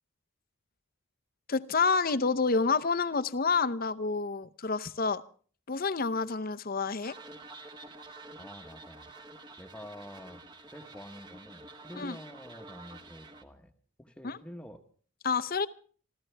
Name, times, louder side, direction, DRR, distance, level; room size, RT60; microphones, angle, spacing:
voice 1, 1.5-5.2 5.7-7.2 12.0-12.2 14.2-14.4 15.2-15.7, left 4 dB, 40° left, 12 dB, 0.7 m, -28 dB
sound 1, 7.0-13.4, right 2 dB, 20° right, 1.0 m, -49 dB
voice 2, 8.4-9.1 9.6-13.7 14.0-14.8, equal, 5° left, 5 dB, 1.0 m, -48 dB
26.5 x 14.5 x 3.3 m, 0.43 s
head